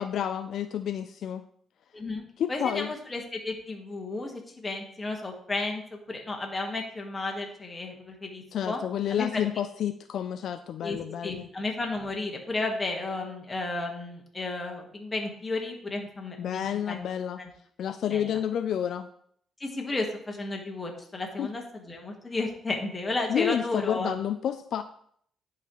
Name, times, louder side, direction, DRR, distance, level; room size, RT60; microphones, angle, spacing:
voice 1, 0.0-1.5 2.4-2.9 8.5-11.5 16.4-17.4 17.8-19.1 21.4-21.5 23.3-24.8, left 9 dB, 70° left, 10 dB, 0.3 m, -30 dB
voice 2, 1.9-2.2 2.5-5.8 6.1-8.8 9.1-9.4 10.8-11.0 11.2-16.9 17.4-17.5 18.1-18.3 19.6-24.1, left 2 dB, 20° left, 1 dB, 1.5 m, -33 dB
10.5 x 4.1 x 3.0 m, 0.63 s
cardioid pair, 90°, 0 cm